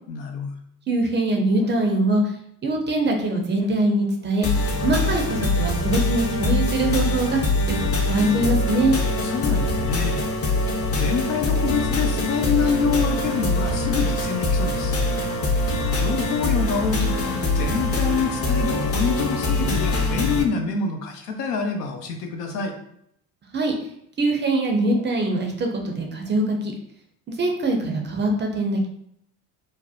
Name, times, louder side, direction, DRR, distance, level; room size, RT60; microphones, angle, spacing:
voice 1, 0.1-0.5 9.2-10.2 10.9-15.0 15.9-22.7, left 5 dB, 90° left, 4 dB, 0.5 m, -26 dB
voice 2, 0.9-2.3 2.6-4.5 4.8-9.0 23.5-23.7 24.2-26.7 27.3-28.9, right 2 dB, 25° right, 2 dB, 0.4 m, -23 dB
sound 1, 4.4-20.4, left 2 dB, 30° left, 0.5 m, -23 dB
2.6 x 2.0 x 2.3 m, 0.72 s
hypercardioid pair, 75°, 47 cm